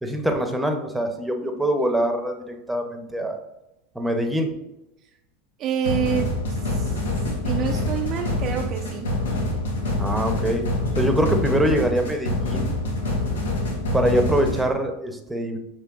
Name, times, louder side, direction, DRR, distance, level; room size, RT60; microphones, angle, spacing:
voice 1, 0.0-3.4 3.9-4.5 10.0-10.6 11.0-12.7 13.9-15.6, right 1 dB, 5° right, 4 dB, 0.7 m, -24 dB
voice 2, 5.6-7.0 7.4-9.1, right 8 dB, 45° right, 3 dB, 0.3 m, -28 dB
sound 1, 5.8-14.6, left 2 dB, 90° left, 0.9 m, -26 dB
6.5 x 3.1 x 2.4 m, 0.91 s
hypercardioid pair, 100°, 0 cm